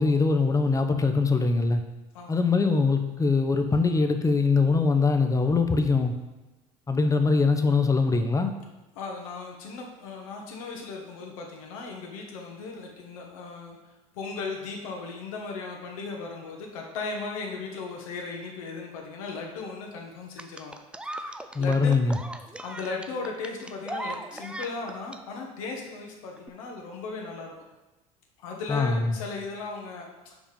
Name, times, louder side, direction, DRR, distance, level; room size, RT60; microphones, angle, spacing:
voice 1, 0.0-1.8 2.3-6.1 6.9-8.5 21.5-22.2 28.7-29.2, left 4 dB, 20° left, 6 dB, 0.8 m, -22 dB
voice 2, 8.9-20.8 21.1-21.9 22.6-27.5 28.4-30.4, left 4 dB, 75° left, 1 dB, 1.3 m, -37 dB
sound 1, 20.4-25.2 26.4-26.5, right 1 dB, 5° right, 0.5 m, -38 dB
5.1 x 4.9 x 5.4 m, 1.1 s
hypercardioid pair, 70°, 18 cm